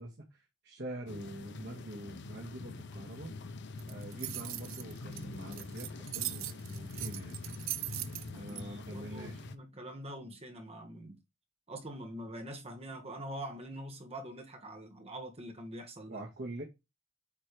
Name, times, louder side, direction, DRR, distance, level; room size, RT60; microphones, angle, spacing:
voice 1, 0.0-3.3 3.9-7.4 8.3-9.4 16.1-16.6, right 1 dB, 55° right, 1.8 m, -45 dB
sound 1, 1.1-9.5, left 3 dB, 60° left, 0.7 m, -45 dB
sound 2, 3.8-8.6, right 16 dB, 80° right, 0.6 m, -40 dB
voice 2, 8.3-11.2 11.7-16.2, right 1 dB, 30° right, 1.6 m, -44 dB
8.6 x 4.4 x 3.2 m
head